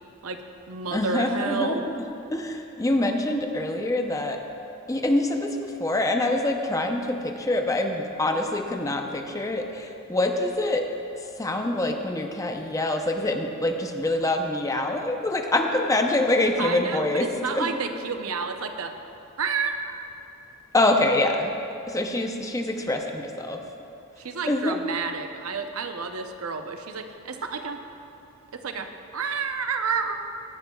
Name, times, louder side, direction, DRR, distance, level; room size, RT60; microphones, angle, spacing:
voice 1, 0.2-1.8 16.6-18.9 19.4-20.0 24.2-27.8 28.5-30.2, right 5 dB, 85° right, 6 dB, 0.7 m, -30 dB
voice 2, 0.9-2.0 2.3-4.4 4.9-10.9 11.4-17.3 17.5-17.7 20.7-21.6 21.9-23.6 24.5-24.8, left 2 dB, 15° left, 3 dB, 0.6 m, -25 dB
16.5 x 11.5 x 2.3 m, 2.7 s
head